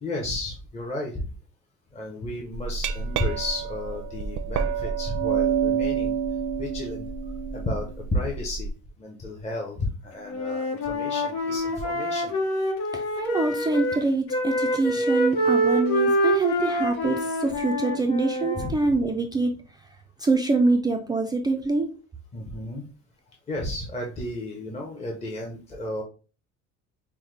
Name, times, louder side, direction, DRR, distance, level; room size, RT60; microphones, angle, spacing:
voice 1, 0.0-1.3 1.9-6.2 6.6-7.1 7.5-7.9 8.1-8.7 9.0-12.3 18.6-18.7 22.3-22.8 23.5-26.0, left 1 dB, 20° left, -1 dB, 0.7 m, -32 dB
Glass, 2.5-8.7, right 7 dB, 75° right, 0.6 m, -28 dB
Wind instrument woodwind instrument, 10.3-14.0 14.3-18.7, equal, 90° left, 1.0 m, -26 dB
voice 2, 12.9-19.5 20.2-21.9, right 3 dB, 15° right, 2 dB, 0.3 m, -25 dB
5.5 x 2.1 x 3.2 m, 0.36 s
cardioid pair, 145°, 30 cm